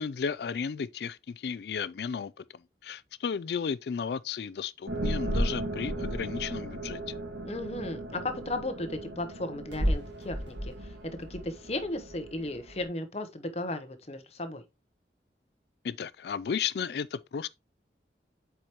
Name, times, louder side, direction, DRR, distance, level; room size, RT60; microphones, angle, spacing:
voice 1, 0.0-7.1 15.8-17.5, left 6 dB, 65° left, 0.3 m, -34 dB
sound 1, 4.9-12.9, right 1 dB, 90° right, 1.7 m, -34 dB
voice 2, 7.4-14.6, left 2 dB, 35° left, 0.8 m, -35 dB
7.8 x 4.7 x 2.9 m
head